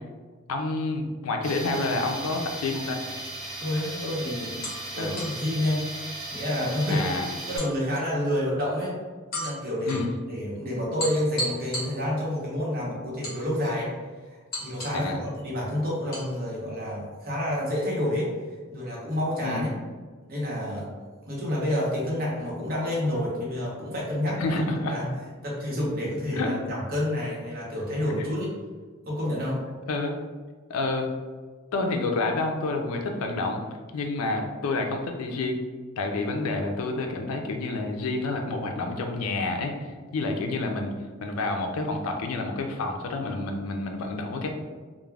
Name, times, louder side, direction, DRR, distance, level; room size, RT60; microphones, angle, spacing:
voice 1, 0.5-3.0 5.0-5.1 6.9-7.3 9.9-10.1 14.9-15.3 19.4-19.6 24.4-24.9 26.3-26.5 29.9-30.2 30.7-31.1 31.7-33.6 33.9-35.6 36.0-40.9 41.2-44.5, left 2 dB, 85° left, 3 dB, 0.4 m, -29 dB
Tools, 1.4-7.6, right 2 dB, 90° right, 0.9 m, -37 dB
voice 2, 3.6-4.7 4.9-5.8 6.3-7.0 7.5-9.0 9.3-13.9 14.3-18.3 18.7-19.7 20.3-20.9 21.3-24.4 24.9-25.1 25.4-28.5 29.1-29.6, left 1 dB, 45° right, -5 dB, 0.8 m, -29 dB
sound 1, 4.6-5.4 7.6-8.4 9.3-10.1 11.0-12.4 13.2-13.9 14.5-15.1 16.1-16.3, equal, 45° left, 0.9 m, -35 dB
2.3 x 2.1 x 3.2 m, 1.4 s
head